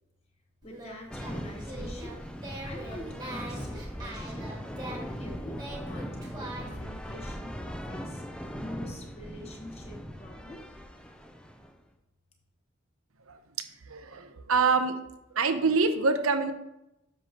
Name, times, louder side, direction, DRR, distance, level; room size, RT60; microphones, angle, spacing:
voice 1, 0.6-2.2 2.6-4.5 4.9-8.2 8.6-10.6, left 1 dB, 30° left, 1 dB, 1.2 m, -45 dB
Singing, 0.6-6.9, right 1 dB, 20° right, 1.4 m, -43 dB
sound 1, 1.1-11.8, equal, 5° left, 0.4 m, -39 dB
voice 2, 13.3-15.0 15.3-16.5, right 4 dB, 80° right, 8 dB, 0.7 m, -26 dB
10.0 x 6.4 x 2.9 m, 0.89 s
head